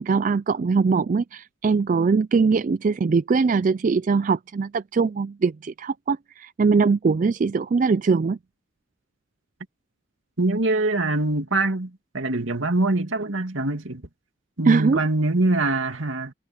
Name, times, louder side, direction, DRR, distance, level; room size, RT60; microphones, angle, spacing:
voice 1, 0.0-8.4 14.7-15.0, right 4 dB, 40° right, 0.3 m, -21 dB
voice 2, 10.4-14.0 14.6-16.3, right 2 dB, 65° right, 2.4 m, -24 dB
head